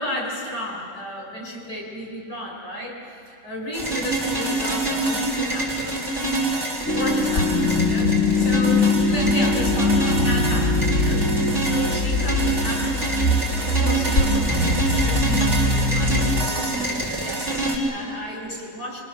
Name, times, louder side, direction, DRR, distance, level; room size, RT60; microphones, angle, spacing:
voice 1, 0.0-3.0 3.3-6.0 6.4-13.1 13.6-19.0, left 1 dB, 75° left, -1 dB, 6.6 m, -33 dB
sound 1, 3.7-17.8, right 2 dB, 30° right, 5.2 m, -26 dB
sound 2, 6.9-16.5, left 2 dB, 45° left, 2.6 m, -22 dB
28.5 x 25.0 x 7.0 m, 2.3 s
omnidirectional pair, 1.9 m